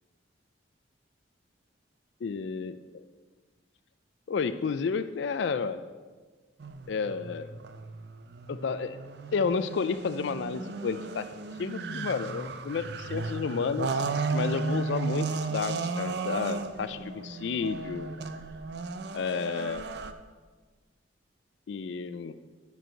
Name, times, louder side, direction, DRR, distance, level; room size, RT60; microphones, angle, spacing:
voice 1, 2.2-3.0 4.3-5.8 6.9-7.5 8.5-9.0 9.3-11.3 11.6-18.2 19.1-19.9 21.7-22.3, left 5 dB, 65° left, 12 dB, 0.4 m, -31 dB
sound 1, 6.6-20.1, right 4 dB, 55° right, 0.5 m, -35 dB
10.5 x 4.7 x 6.4 m, 1.4 s
head